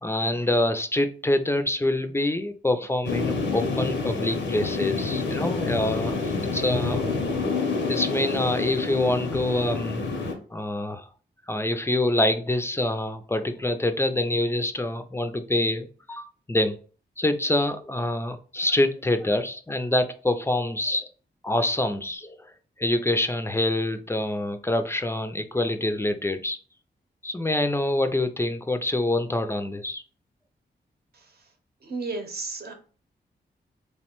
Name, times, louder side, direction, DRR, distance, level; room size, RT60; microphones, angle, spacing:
voice 1, 0.0-7.0 7.9-10.0 10.5-11.1 11.5-16.8 17.2-21.1 21.4-22.5 22.8-26.6 27.2-30.0, left 1 dB, 15° left, 9 dB, 0.3 m, -26 dB
sound 1, 3.0-10.3, left 4 dB, 90° left, 0.6 m, -28 dB
voice 2, 31.8-32.7, right 3 dB, 60° right, 4 dB, 0.8 m, -32 dB
3.2 x 2.1 x 2.9 m, 0.39 s
cardioid pair, 55°, 19 cm